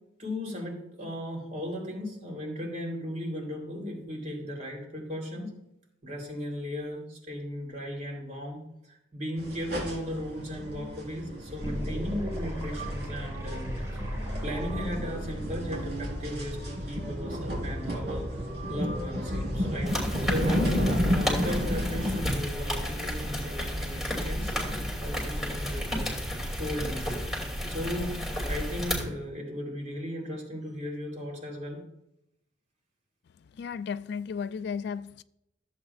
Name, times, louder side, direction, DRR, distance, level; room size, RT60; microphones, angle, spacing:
voice 1, 0.2-5.5 6.0-14.2 14.4-18.3 18.7-19.9 20.2-26.1 26.6-27.1 27.7-28.2 28.5-31.8, equal, 40° right, 3.4 m, -36 dB
sound 1, 9.4-22.2, equal, 60° right, 3.6 m, -32 dB
sound 2, 11.6-16.7, equal, 20° right, 2.0 m, -37 dB
sound 3, 19.9-29.0, equal, ahead, 2.7 m, -32 dB
voice 2, 33.5-35.2, left 6 dB, 60° left, 0.3 m, -34 dB
14.5 x 8.0 x 2.4 m
head